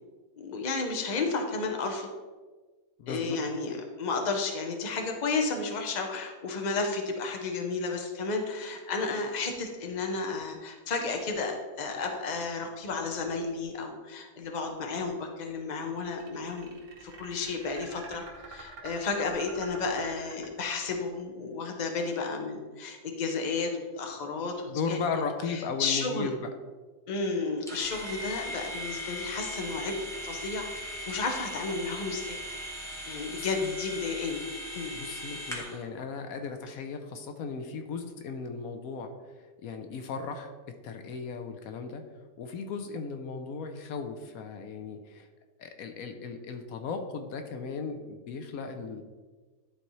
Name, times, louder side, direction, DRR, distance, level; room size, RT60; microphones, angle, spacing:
voice 1, 0.4-2.1 3.1-16.7 17.0-25.0 25.5-26.3 27.1-30.0 30.2-32.4 33.1-34.5 34.7-34.9, left 4 dB, 35° left, 3 dB, 0.8 m, -32 dB
voice 2, 3.0-3.4 24.7-26.5 33.0-33.8 34.9-42.0 42.4-45.3 45.6-49.0, left 5 dB, 80° left, 6 dB, 1.1 m, -36 dB
sound 1, 16.0-21.0, right 3 dB, 85° right, 1.6 m, -46 dB
sound 2, 27.7-35.8, equal, ahead, 1.0 m, -39 dB
11.0 x 4.2 x 3.1 m, 1.4 s
omnidirectional pair, 1.5 m